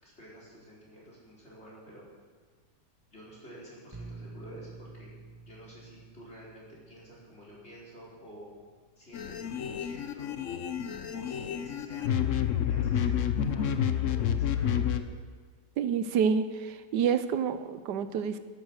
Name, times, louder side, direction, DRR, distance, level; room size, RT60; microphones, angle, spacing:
voice 1, 0.0-2.0 3.1-5.2 5.5-8.5 9.0-10.3 11.1-15.1, equal, 40° left, -6 dB, 4.9 m, -50 dB
sound 1, 3.9-9.7, right 3 dB, 15° right, 1.1 m, -50 dB
sound 2, 9.1-15.0, left 9 dB, 55° left, 1.0 m, -29 dB
voice 2, 15.8-18.4, right 7 dB, 80° right, 11 dB, 1.3 m, -28 dB
13.5 x 11.5 x 6.4 m, 1.5 s
omnidirectional pair, 1.8 m